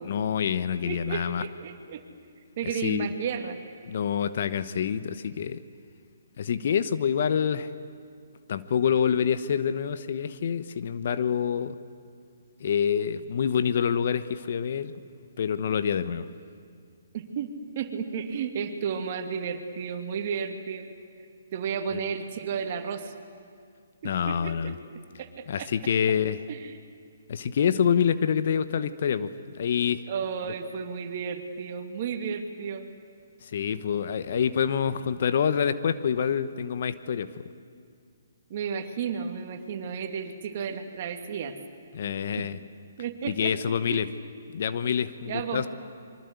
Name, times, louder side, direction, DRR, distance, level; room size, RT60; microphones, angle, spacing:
voice 1, 0.0-1.5 2.6-3.1 3.8-5.6 6.4-7.7 8.5-11.7 12.6-14.9 15.4-16.3 21.9-22.0 24.0-24.8 25.5-26.4 27.3-30.0 33.4-37.3 41.9-42.6 43.3-44.1 44.5-45.7, left 7 dB, 55° left, 13 dB, 1.1 m, -26 dB
voice 2, 0.9-2.0 2.6-3.6 17.1-20.9 21.5-23.1 24.0-24.7 25.2-25.7 26.5-26.8 30.1-32.8 38.5-41.5 42.4-42.5 43.0-43.5 43.9-44.1 45.2-45.7, right 6 dB, 45° right, 6 dB, 2.4 m, -33 dB
25.5 x 23.5 x 8.3 m, 2.2 s
figure-of-eight pair, 140°, 0 cm